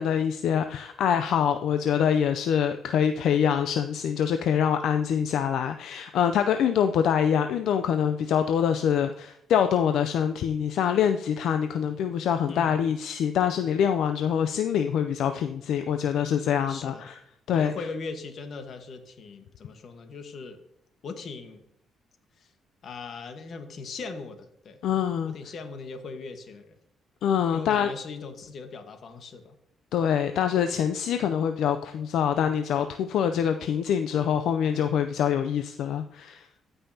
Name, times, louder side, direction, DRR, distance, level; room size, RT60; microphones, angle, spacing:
voice 1, 0.0-17.2 17.5-17.7 24.8-25.3 27.2-27.9 29.9-36.5, left 8 dB, 80° left, 8 dB, 0.4 m, -25 dB
voice 2, 16.7-17.1 17.5-20.6 21.0-21.6 22.4-22.5 22.8-24.8 25.3-26.8 27.5-29.5 36.3-36.5, left 4 dB, 55° left, 7 dB, 1.3 m, -39 dB
14.5 x 5.5 x 2.8 m, 0.77 s
cardioid pair, 90°, 0 cm